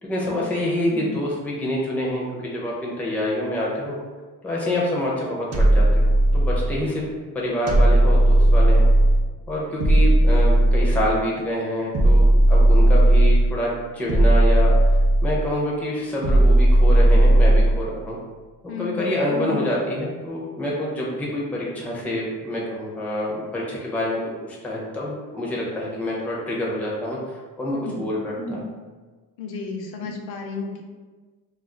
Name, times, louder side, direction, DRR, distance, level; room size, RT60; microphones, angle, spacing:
voice 1, 0.0-4.0 4.4-7.0 7.3-8.8 9.5-18.2 18.6-28.7, left 1 dB, 5° left, -5 dB, 0.4 m, -27 dB
sound 1, 5.5-6.8 7.7-9.3 9.8-11.2 11.9-13.6 14.1-15.5 16.2-17.8, right 1 dB, 45° right, 0.5 m, -16 dB
voice 2, 18.7-19.1 27.7-28.0 29.4-30.8, left 4 dB, 85° left, 1 dB, 0.6 m, -33 dB
2.4 x 2.3 x 3.6 m, 1.3 s
cardioid pair, 160°, 36 cm